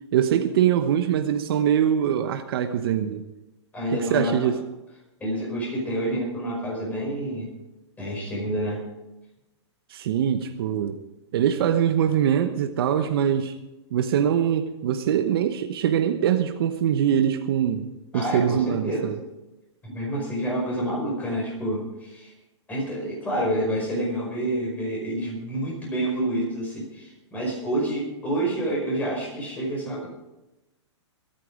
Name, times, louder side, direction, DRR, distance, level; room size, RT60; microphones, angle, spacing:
voice 1, 0.1-3.2 3.9-4.6 9.9-11.0 11.3-13.6 13.9-17.9 18.1-19.2, right 9 dB, 50° right, 8 dB, 1.1 m, -23 dB
voice 2, 3.7-4.5 5.2-7.5 8.0-8.8 18.1-19.1 19.8-22.3 22.7-30.1, right 1 dB, 10° left, -1 dB, 5.1 m, -28 dB
22.5 x 9.3 x 5.0 m, 1.0 s
hypercardioid pair, 160°, 15 cm